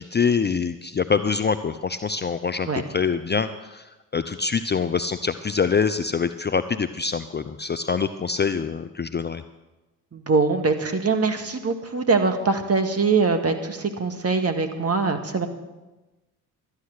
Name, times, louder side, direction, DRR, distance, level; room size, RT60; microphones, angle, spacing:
voice 1, 0.0-3.9 4.1-9.4, left 5 dB, 25° left, 11 dB, 0.6 m, -25 dB
voice 2, 10.1-15.5, right 4 dB, 35° right, 6 dB, 1.9 m, -23 dB
13.0 x 9.7 x 6.6 m, 1.1 s
hypercardioid pair, 50°, 43 cm